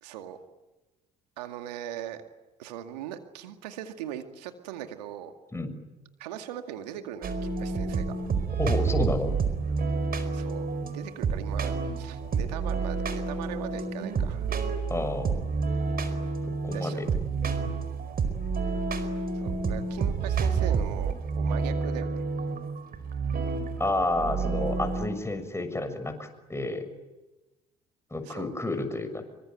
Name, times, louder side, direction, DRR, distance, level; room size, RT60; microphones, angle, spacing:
voice 1, 0.0-0.4 1.4-2.2 2.6-5.3 6.2-8.1 10.3-10.7 10.9-14.5 16.7-17.0 19.3-22.2 28.2-28.5, right 10 dB, 80° right, 8 dB, 2.2 m, -39 dB
sound 1, 7.2-25.1, right 4 dB, 45° right, 4.8 m, -29 dB
voice 2, 8.6-9.4 14.9-15.4 16.6-17.1 23.8-26.8 28.1-29.2, left 2 dB, 15° left, 8 dB, 6.6 m, -30 dB
26.5 x 24.0 x 9.2 m, 1.1 s
hypercardioid pair, 60°, 21 cm